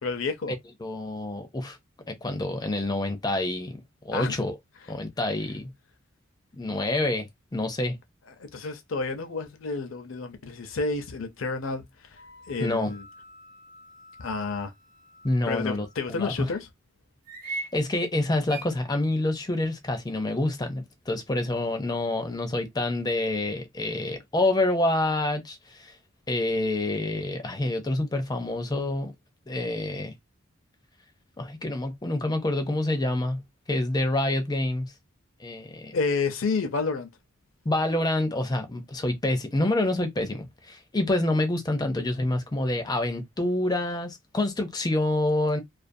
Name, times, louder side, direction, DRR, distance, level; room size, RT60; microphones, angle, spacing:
voice 1, 0.0-0.6 4.1-4.4 8.4-12.2 12.5-13.0 14.2-14.7 15.5-16.7 35.9-37.1, left 4 dB, 65° left, 0.6 m, -30 dB
voice 2, 0.8-1.8 2.1-3.8 4.0-4.6 4.9-5.7 6.5-7.3 7.5-8.0 12.6-13.0 15.2-16.5 17.4-25.9 26.3-29.1 29.5-30.1 31.4-33.4 33.7-34.9 35.4-35.9 37.7-45.6, left 2 dB, 20° left, 0.5 m, -27 dB
sound 1, 12.1-16.0 17.2-17.7 18.5-18.7, right 3 dB, 45° right, 0.8 m, -42 dB
2.4 x 2.3 x 2.6 m
head